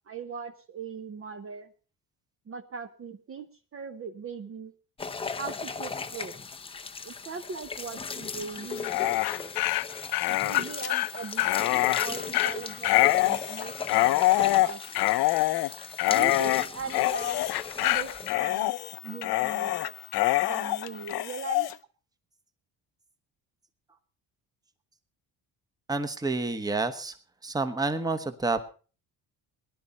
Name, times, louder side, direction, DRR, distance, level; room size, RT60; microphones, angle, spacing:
voice 1, 0.1-1.7 2.5-3.5 3.7-4.7 5.4-6.3 7.0-9.6 10.3-15.2 16.1-17.4 17.8-18.7 19.0-19.9 20.4-21.7, right 5 dB, 35° right, 8 dB, 0.9 m, -39 dB
sound 1, 5.0-18.3, left 5 dB, 15° left, 0.6 m, -38 dB
Dog, 8.7-21.7, left 17 dB, 70° left, 0.6 m, -25 dB
voice 2, 25.9-27.1 27.4-28.6, right 3 dB, 10° right, 9 dB, 1.1 m, -29 dB
18.5 x 11.0 x 4.2 m, 0.37 s
cardioid pair, 135°, 40 cm